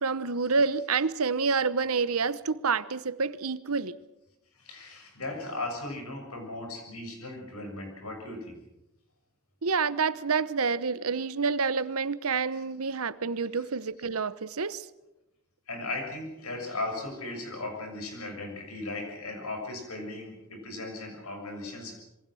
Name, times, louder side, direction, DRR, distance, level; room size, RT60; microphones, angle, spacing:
voice 1, 0.0-4.0 9.6-14.9, right 4 dB, 75° right, 1.0 m, -28 dB
voice 2, 4.6-8.6 12.5-12.6 15.7-22.1, left 2 dB, 80° left, 6.9 m, -37 dB
26.5 x 23.0 x 6.3 m
head